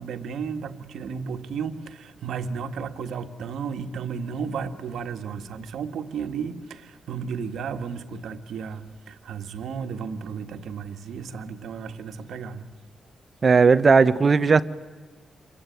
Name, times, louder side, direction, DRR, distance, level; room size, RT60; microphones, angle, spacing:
voice 1, 0.0-12.7, right 6 dB, 90° right, 1.7 m, -33 dB
voice 2, 13.4-14.6, right 5 dB, 35° right, 1.0 m, -16 dB
27.5 x 23.0 x 9.3 m
wide cardioid pair, 125°, 0 cm